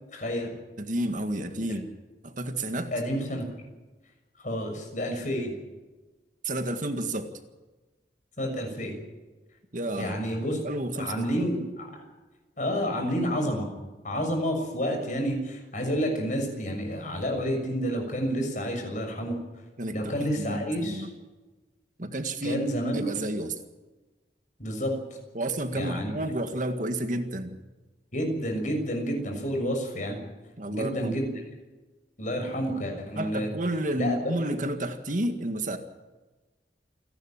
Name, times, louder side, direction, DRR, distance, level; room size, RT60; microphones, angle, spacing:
voice 1, 0.1-0.5 1.7-1.8 2.9-3.5 4.4-5.5 8.4-8.9 10.0-10.6 11.0-12.0 12.6-13.7 14.0-19.3 19.9-21.1 22.4-23.1 24.6-24.9 25.7-26.1 28.1-30.2 30.7-31.3 32.2-33.5 34.0-34.2, equal, 45° left, 3 dB, 6.5 m, -29 dB
voice 2, 0.8-1.9 2.2-2.9 6.4-7.3 9.7-10.2 10.6-11.2 19.8-21.1 22.0-22.7 22.9-23.6 25.3-27.6 30.6-31.2 33.2-35.8, right 1 dB, 45° right, 7 dB, 1.9 m, -31 dB
28.5 x 12.0 x 9.0 m, 1.2 s
head